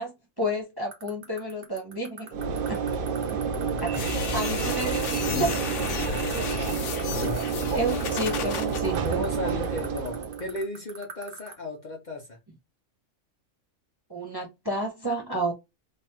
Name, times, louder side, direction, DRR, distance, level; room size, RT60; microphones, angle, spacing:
voice 1, 0.0-2.4 2.7-2.8 3.3-3.4 3.8-5.5 6.5-6.7 7.2-7.3 7.7-9.2 14.1-15.5, right 1 dB, 20° right, 0.7 m, -31 dB
sound 1, 0.9-11.5, right 6 dB, 75° right, 1.4 m, -41 dB
Train / Engine / Alarm, 2.3-10.6, right 6 dB, 60° right, 0.6 m, -29 dB
voice 2, 3.7-4.7 9.0-12.4, left 1 dB, 45° left, 0.8 m, -35 dB
sound 2, 3.9-8.8, left 7 dB, 70° left, 1.0 m, -33 dB
3.3 x 2.3 x 4.1 m
omnidirectional pair, 1.3 m